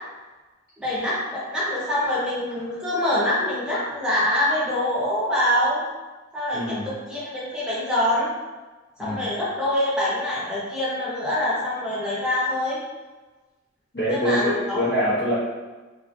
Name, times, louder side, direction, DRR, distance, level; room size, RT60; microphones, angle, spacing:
voice 1, 0.8-5.8 6.3-8.3 9.0-12.8 14.1-14.9, left 1 dB, 5° right, -9 dB, 0.9 m, -25 dB
voice 2, 6.5-6.9 9.0-9.3 13.9-15.3, equal, 50° left, -16 dB, 1.2 m, -24 dB
3.3 x 2.7 x 2.4 m, 1.2 s
head